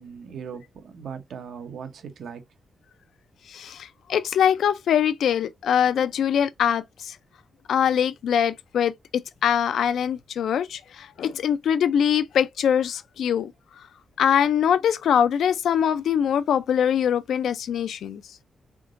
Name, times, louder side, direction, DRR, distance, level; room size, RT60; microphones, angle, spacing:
voice 1, 0.0-2.4, right 7 dB, 70° right, 0.8 m, -38 dB
voice 2, 3.5-7.2 7.7-13.5 14.2-18.2, left 8 dB, 80° left, 0.4 m, -23 dB
3.7 x 3.5 x 2.5 m
cardioid pair, 115°, 0 cm